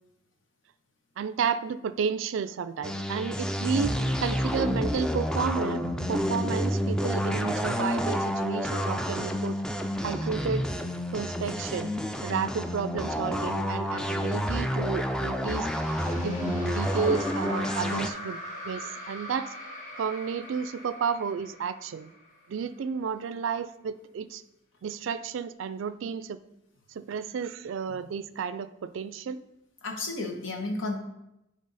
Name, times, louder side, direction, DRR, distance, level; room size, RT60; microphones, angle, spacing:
voice 1, 1.2-3.9 4.2-5.8 6.1-9.6 10.0-10.6 11.1-11.9 12.2-15.7 16.2-18.4 18.6-19.5 20.0-22.1 22.5-24.4 24.8-26.4 27.0-29.4, right 6 dB, 75° right, 14 dB, 0.4 m, -32 dB
sound 1, 2.8-18.1, equal, 5° left, 0.3 m, -29 dB
sound 2, 15.4-22.7, left 1 dB, 40° left, 1.6 m, -41 dB
voice 2, 29.8-31.0, left 2 dB, 85° left, 2 dB, 1.3 m, -32 dB
10.0 x 3.6 x 4.0 m, 0.87 s
head